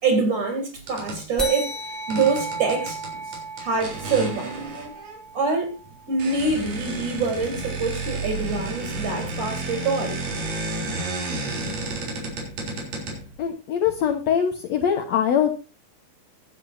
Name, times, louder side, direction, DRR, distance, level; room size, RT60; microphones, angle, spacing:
voice 1, 0.0-1.8 2.1-3.0 3.3-4.7 5.3-5.8 6.1-10.2, right 4 dB, 45° right, 4.4 m, -25 dB
sound 1, 0.8-1.3 2.1-5.2 5.8-5.9 6.2-13.5, right 2 dB, 85° right, 5.2 m, -32 dB
sound 2, 1.4-6.3, right 1 dB, ahead, 2.2 m, -35 dB
voice 2, 13.4-15.5, left 8 dB, 60° left, 2.2 m, -22 dB
22.5 x 8.1 x 2.7 m
omnidirectional pair, 3.7 m